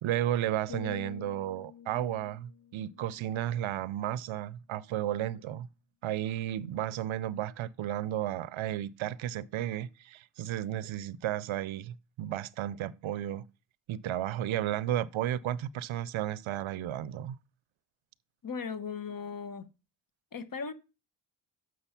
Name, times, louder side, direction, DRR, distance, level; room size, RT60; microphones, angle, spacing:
voice 1, 0.0-5.7 6.0-13.4 13.9-17.4, right 12 dB, 90° right, 0.5 m, -33 dB
sound 1, 0.7-4.7 5.0-5.4, left 8 dB, 65° left, 2.6 m, -49 dB
voice 2, 18.4-19.7 20.3-20.7, left 5 dB, 45° left, 1.0 m, -37 dB
7.0 x 6.3 x 5.7 m
cardioid pair, 70°, 46 cm